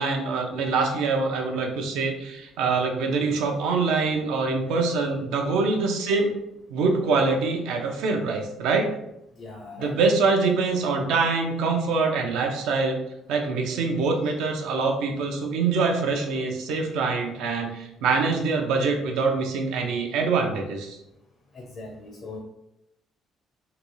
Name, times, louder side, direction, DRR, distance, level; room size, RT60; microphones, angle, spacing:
voice 1, 0.0-6.4 6.7-8.9 9.8-13.0 13.3-21.0, right 4 dB, 85° right, 2 dB, 0.6 m, -24 dB
voice 2, 9.4-10.0 21.5-22.4, left 3 dB, 45° left, -1 dB, 0.6 m, -40 dB
3.8 x 2.3 x 3.1 m, 0.82 s
cardioid pair, 110°, 0 cm